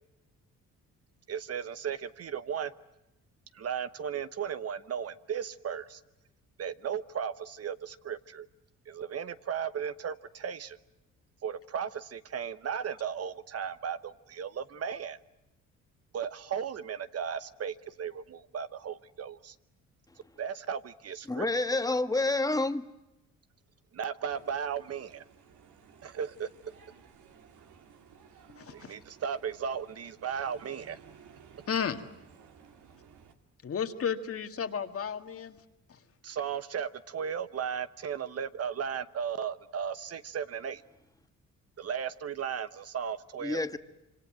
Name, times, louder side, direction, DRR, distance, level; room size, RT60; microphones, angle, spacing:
voice 1, 1.3-2.7 3.5-6.0 6.6-8.5 8.9-10.8 11.4-15.2 16.1-19.5 20.4-21.5 23.9-25.2 26.0-26.5 28.7-31.0 36.2-40.8 41.8-43.6, right 7 dB, 55° right, 1.1 m, -35 dB
voice 2, 21.3-22.9 43.4-43.8, left 2 dB, 10° left, 1.3 m, -29 dB
sound 1, 24.3-33.3, right 7 dB, 75° right, 2.6 m, -56 dB
voice 3, 28.6-28.9 31.7-32.0 33.6-35.6 35.9-36.0, left 7 dB, 50° left, 1.9 m, -33 dB
26.0 x 25.0 x 7.5 m
cardioid pair, 90°, 30 cm